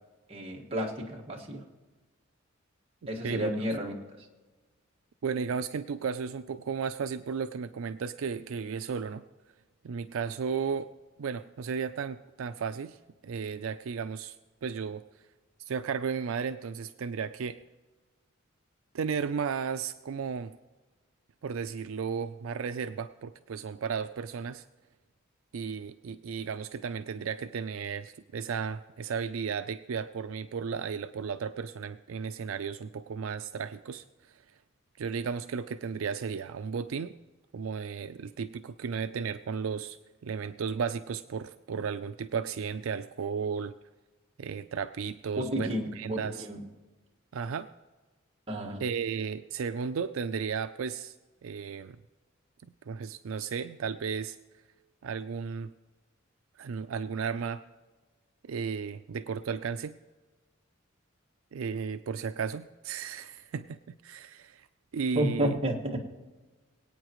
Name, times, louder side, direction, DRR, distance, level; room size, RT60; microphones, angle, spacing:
voice 1, 0.3-1.6 3.1-3.9 45.4-46.6 48.5-48.8 65.1-66.0, equal, 30° right, -1 dB, 1.8 m, -31 dB
voice 2, 5.2-9.2 9.8-10.9 11.2-13.0 13.2-14.4 14.6-15.0 15.6-17.6 18.9-20.6 21.4-24.6 25.5-34.4 35.0-37.1 37.5-43.8 44.4-46.5 47.3-47.7 48.8-51.1 51.4-52.0 52.9-54.4 55.0-55.7 56.6-57.6 58.4-60.0 61.5-64.7 64.9-65.6, right 6 dB, 70° right, 11 dB, 0.4 m, -34 dB
24.0 x 8.9 x 3.1 m, 1.3 s
head